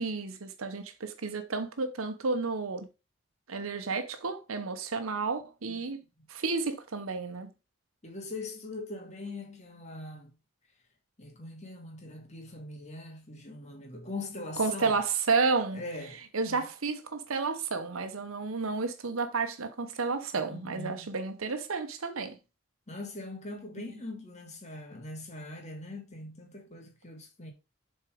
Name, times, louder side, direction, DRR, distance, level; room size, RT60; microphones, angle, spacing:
voice 1, 0.0-2.9 3.5-6.0 6.3-7.5 14.6-15.8 16.3-22.4, right 4 dB, 85° right, 0.9 m, -31 dB
voice 2, 8.0-10.3 11.2-15.0 15.7-16.6 20.5-21.1 22.9-27.5, left 2 dB, 35° left, 2.2 m, -42 dB
7.4 x 4.4 x 5.0 m
head